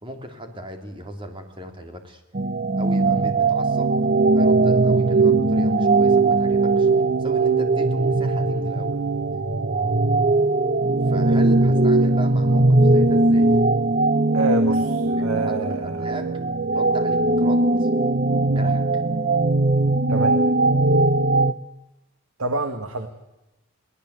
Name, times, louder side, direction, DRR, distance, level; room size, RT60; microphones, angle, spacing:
voice 1, 0.0-2.2 2.7-4.0 4.3-6.9 7.2-9.0 11.0-13.5 14.6-14.8 15.1-16.3 16.7-17.9 18.4-19.0, equal, 25° right, 5 dB, 3.2 m, -37 dB
sound 1, 2.3-21.5, right 2 dB, 40° right, 0.7 m, -19 dB
voice 2, 14.3-16.1 20.1-20.4 22.4-23.1, right 2 dB, 80° right, 7 dB, 1.9 m, -27 dB
23.0 x 18.5 x 8.2 m, 0.94 s
head